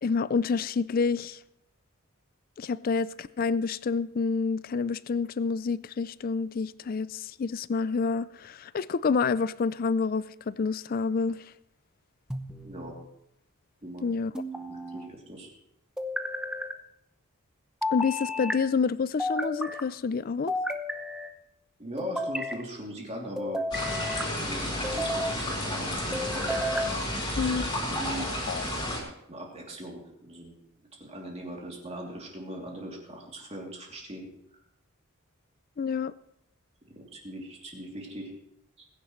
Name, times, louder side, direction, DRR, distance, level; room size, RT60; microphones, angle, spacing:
voice 1, 0.0-1.4 2.6-11.4 14.0-14.3 17.9-20.5 27.4-27.7 28.5-28.6 35.8-36.1, left 5 dB, 40° left, 0.4 m, -28 dB
sound 1, 12.3-13.0 14.3-15.1 16.0-16.7 17.8-18.6 19.2-19.8 20.5-21.3 22.0-22.6 23.4-24.3 24.8-25.4 26.1-26.9, left 1 dB, 5° right, 0.8 m, -32 dB
voice 2, 12.6-12.9 13.8-14.0 14.7-15.5 21.8-24.0 24.4-26.5 27.2-27.5 27.9-28.3 29.3-30.6 30.9-34.3 36.9-38.3 38.8-38.9, equal, 30° right, 3.0 m, -40 dB
sound 2, 23.7-29.0, left 1 dB, 20° left, 4.1 m, -31 dB
21.0 x 10.0 x 3.2 m
head